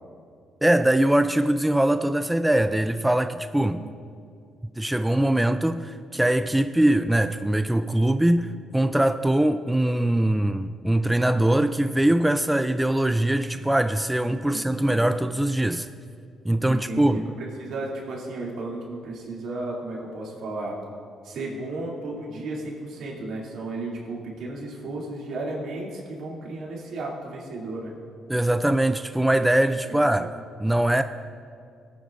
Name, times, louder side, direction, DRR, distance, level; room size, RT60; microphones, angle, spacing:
voice 1, 0.6-3.8 4.8-15.9 16.4-17.2 28.3-30.3 30.6-31.0, right 1 dB, 5° right, 0.3 m, -22 dB
voice 2, 3.6-3.9 14.2-15.0 16.7-20.7 21.2-27.9 29.9-30.3, right 2 dB, 75° right, 2.6 m, -34 dB
18.5 x 9.0 x 2.5 m
cardioid pair, 90°, 0 cm